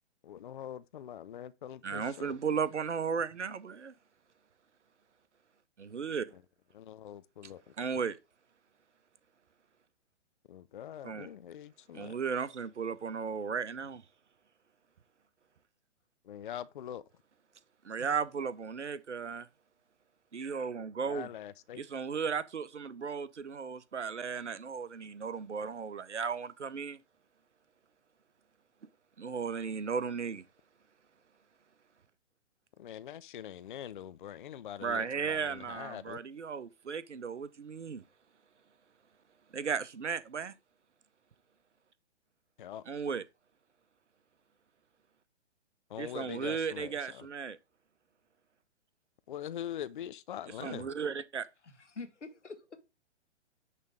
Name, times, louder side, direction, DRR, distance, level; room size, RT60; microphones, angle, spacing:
voice 1, 0.2-2.4 6.7-7.6 10.5-12.1 16.3-17.0 21.0-21.8 32.8-36.2 42.6-42.8 45.9-47.3 49.3-50.9, left 10 dB, 45° left, 0.4 m, -43 dB
voice 2, 1.8-3.9 5.8-6.3 7.8-8.2 11.0-11.3 11.9-14.0 17.8-19.5 20.3-21.3 21.8-27.0 29.2-30.4 34.8-38.0 39.5-40.5 42.9-43.2 46.0-47.6 50.6-51.5, right 6 dB, 75° right, 0.8 m, -35 dB
voice 3, 51.6-52.8, left 4 dB, 80° left, 1.6 m, -46 dB
9.6 x 3.4 x 4.9 m
figure-of-eight pair, 125°, 35 cm